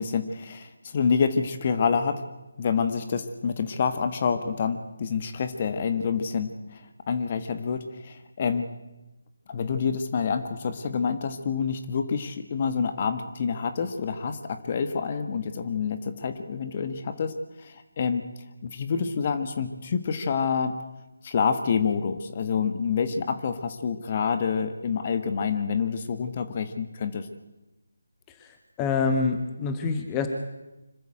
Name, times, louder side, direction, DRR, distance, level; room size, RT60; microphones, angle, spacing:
voice 1, 0.0-2.2 2.6-6.8 7.1-8.7 9.5-18.2 18.6-20.8 21.2-27.3, left 6 dB, 35° left, 8 dB, 1.6 m, -27 dB
voice 2, 28.8-30.3, left 4 dB, 15° left, 5 dB, 1.4 m, -25 dB
25.5 x 13.5 x 7.9 m, 0.99 s
figure-of-eight pair, 160°, 0 cm